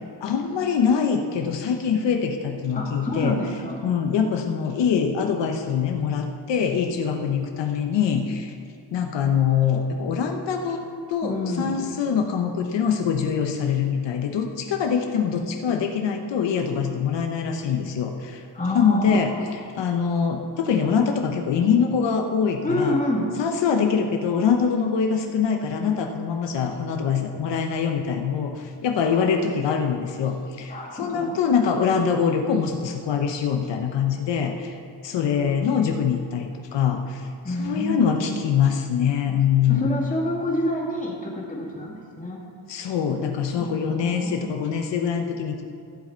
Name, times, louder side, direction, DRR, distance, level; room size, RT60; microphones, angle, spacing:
voice 1, 0.2-3.4 3.8-8.5 8.9-10.8 11.1-18.4 18.7-19.3 19.8-23.0 23.4-34.8 35.0-40.0 42.7-45.6, left 7 dB, 80° left, 4 dB, 0.9 m, -24 dB
voice 2, 2.8-3.8 11.2-11.9 18.5-19.5 22.6-23.3 29.0-29.2 30.7-31.4 37.4-38.2 39.7-42.4 43.6-44.4, left 1 dB, 20° left, -3 dB, 2.1 m, -28 dB
14.5 x 7.5 x 4.5 m, 2.3 s
wide cardioid pair, 155°, 42 cm